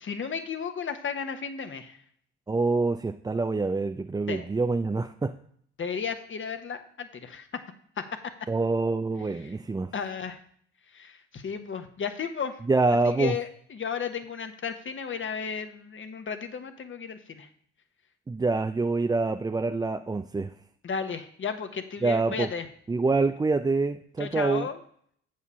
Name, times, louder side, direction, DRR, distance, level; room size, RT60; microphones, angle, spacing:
voice 1, 0.0-2.0 4.3-4.5 5.8-7.5 8.0-8.1 9.4-9.5 9.9-10.4 10.9-12.6 13.0-17.5 20.8-22.7 24.2-24.8, left 6 dB, 40° left, 8 dB, 1.2 m, -34 dB
voice 2, 2.5-5.4 8.5-9.9 12.7-13.3 18.3-20.5 22.0-22.5 22.9-24.7, right 3 dB, 10° right, 6 dB, 0.4 m, -26 dB
8.2 x 4.8 x 5.6 m, 0.63 s
hypercardioid pair, 50°, 32 cm